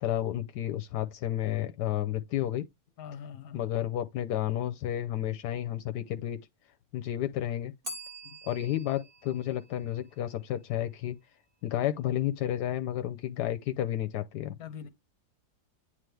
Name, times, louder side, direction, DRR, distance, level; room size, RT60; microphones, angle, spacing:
voice 1, 0.0-2.7 3.5-6.4 6.9-7.7 8.4-11.2 11.6-14.5, left 12 dB, 80° left, 1.2 m, -31 dB
voice 2, 3.0-3.7 8.2-8.4 14.6-14.9, left 8 dB, 65° left, 1.3 m, -43 dB
Bell, 7.8-10.7, equal, 35° right, 1.5 m, -46 dB
9.1 x 3.4 x 3.3 m
omnidirectional pair, 1.8 m